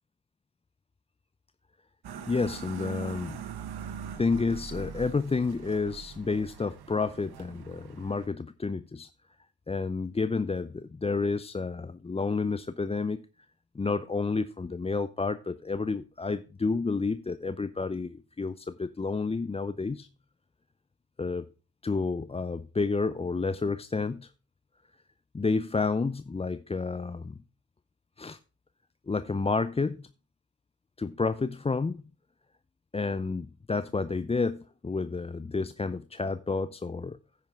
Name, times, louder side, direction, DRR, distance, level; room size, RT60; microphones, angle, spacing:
sound 1, 2.0-8.3, right 7 dB, 65° right, 1.2 m, -42 dB
voice 1, 2.3-3.4 4.2-9.1 9.7-13.2 13.7-20.1 21.2-21.5 21.8-24.3 25.3-27.4 28.2-28.4 29.1-30.1 31.0-32.0 32.9-37.2, left 4 dB, 15° left, 0.5 m, -30 dB
10.5 x 9.3 x 3.6 m
hypercardioid pair, 40°, 42 cm